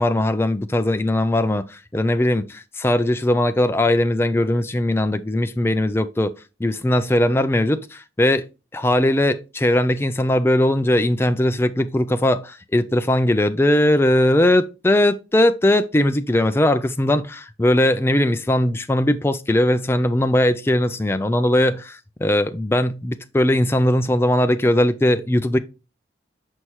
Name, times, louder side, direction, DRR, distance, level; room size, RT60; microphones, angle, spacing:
voice 1, 0.0-6.3 6.6-8.5 8.7-25.6, left 1 dB, 15° left, 0.3 m, -19 dB
6.2 x 5.5 x 3.0 m
head